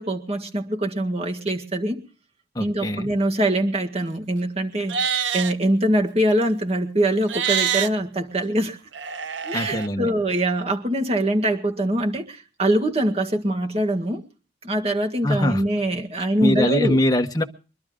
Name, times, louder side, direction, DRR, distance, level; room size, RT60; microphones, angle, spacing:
voice 1, 0.0-2.0 2.6-8.8 9.4-14.2 14.6-17.0, right 1 dB, 35° right, 4 dB, 1.8 m, -23 dB
voice 2, 2.5-3.1 9.5-10.1 15.2-15.6 16.4-17.4, left 1 dB, 20° left, 5 dB, 1.2 m, -22 dB
Livestock farm animals working animals, 4.8-5.5 7.2-7.9 8.9-9.9, right 7 dB, 85° right, 0.7 m, -25 dB
23.5 x 12.0 x 3.7 m, 0.35 s
head